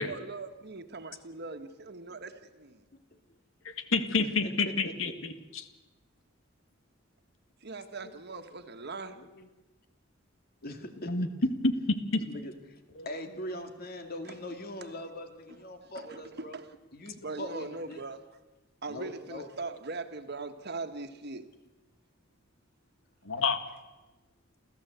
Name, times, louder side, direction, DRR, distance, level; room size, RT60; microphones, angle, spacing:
voice 1, 0.0-2.8 7.6-9.2 14.3-14.4 15.5-15.6 15.9-16.2 16.5-16.7 17.2-18.2 18.8-21.5, right 3 dB, 55° right, 1.5 m, -40 dB
voice 2, 3.6-5.7 11.1-11.3 12.1-12.2 23.2-23.6, left 4 dB, 80° left, 1.8 m, -29 dB
voice 3, 4.6-5.1 10.6-11.3 12.2-16.6 16.9-18.0 18.9-19.5, left 1 dB, 50° left, 2.4 m, -41 dB
29.0 x 14.0 x 8.2 m
head